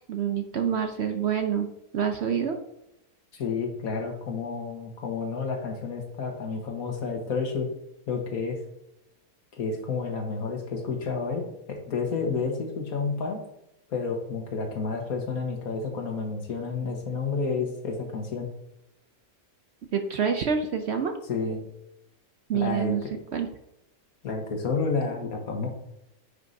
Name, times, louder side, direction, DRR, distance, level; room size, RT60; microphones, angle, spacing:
voice 1, 0.1-1.7 1.9-2.6 19.9-21.1 22.5-23.0 23.3-23.5, right 7 dB, 60° right, 6 dB, 0.8 m, -26 dB
voice 2, 3.3-7.7 8.1-8.6 9.6-13.4 13.9-18.5 21.3-21.6 22.5-23.1 24.2-25.7, left 4 dB, 70° left, 2 dB, 1.8 m, -30 dB
9.7 x 5.4 x 2.7 m, 0.85 s
omnidirectional pair, 1.6 m